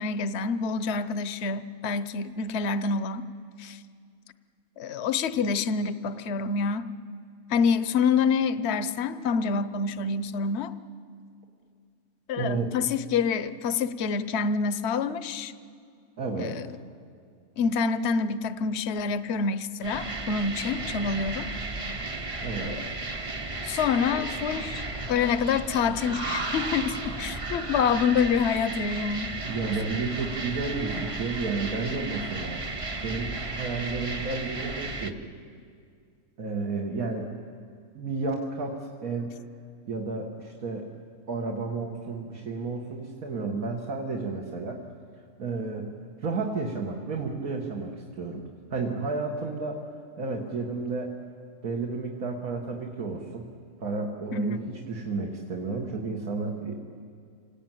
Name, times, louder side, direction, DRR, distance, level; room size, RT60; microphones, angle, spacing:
voice 1, 0.0-3.3 3.6-3.8 4.8-6.9 7.5-10.7 12.3-15.5 16.4-16.7 17.6-21.5 22.6-22.9 23.6-24.8 25.1-29.3 54.3-54.6, left 5 dB, 55° left, 13 dB, 1.0 m, -27 dB
voice 2, 12.4-12.7 16.2-16.6 22.4-22.8 28.6-28.7 29.5-32.6 33.0-35.2 36.4-37.3 37.9-39.3 39.9-40.9 41.3-44.8 45.4-45.9 46.2-47.9 48.2-48.4 48.7-49.8 50.2-51.1 51.6-53.4 53.8-56.8, right 4 dB, 75° right, 0 dB, 2.1 m, -32 dB
sound 1, 19.8-35.1, right 2 dB, 25° right, 0.9 m, -34 dB
27.0 x 18.0 x 9.1 m, 2.2 s
omnidirectional pair, 1.5 m